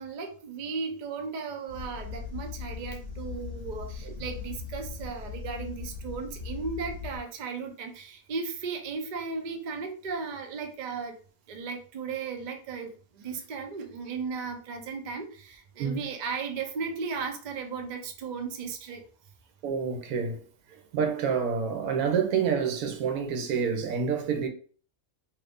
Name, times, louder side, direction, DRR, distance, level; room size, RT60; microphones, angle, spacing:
voice 1, 0.0-11.1 11.5-19.0, right 5 dB, 65° right, 0.4 m, -36 dB
sound 1, 1.7-7.2, left 6 dB, 60° left, 0.6 m, -39 dB
voice 2, 19.6-20.4 20.9-24.5, right 6 dB, 90° right, 1.1 m, -28 dB
2.7 x 2.5 x 3.4 m
omnidirectional pair, 1.5 m